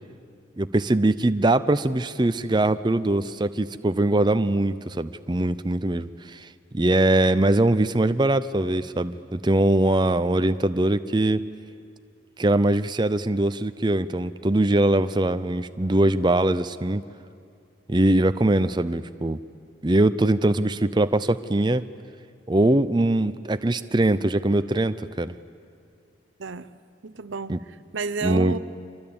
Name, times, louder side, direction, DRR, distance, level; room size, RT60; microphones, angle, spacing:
voice 1, 0.6-6.5 6.7-11.4 12.4-17.0 17.9-19.4 19.8-21.8 22.5-25.3 27.5-27.6 28.2-28.6, right 1 dB, 25° right, 12 dB, 0.6 m, -22 dB
voice 2, 26.4-28.6, right 4 dB, 75° right, 14 dB, 0.8 m, -32 dB
25.5 x 24.0 x 8.8 m, 2.3 s
head